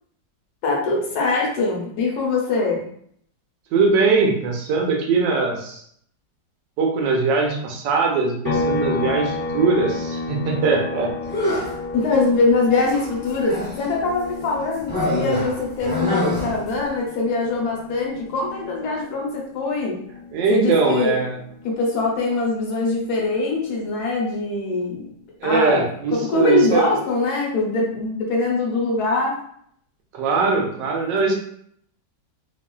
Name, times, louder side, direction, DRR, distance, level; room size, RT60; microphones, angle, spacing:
voice 1, 0.6-2.8 11.9-20.0 20.5-21.2 21.6-25.1 25.4-25.8 26.1-29.3, left 3 dB, 70° left, -2 dB, 1.2 m, -23 dB
voice 2, 3.7-5.8 6.8-11.1 20.3-21.3 25.4-26.9 30.1-31.3, right 4 dB, 85° right, 1 dB, 1.3 m, -21 dB
sound 1, 8.4-22.0 22.3-24.5, left 2 dB, 85° left, 1.2 m, -32 dB
sound 2, 11.2-11.8 12.9-13.9 14.9-16.7, left 1 dB, 15° left, 0.4 m, -25 dB
3.0 x 2.4 x 2.2 m, 0.66 s
omnidirectional pair, 1.9 m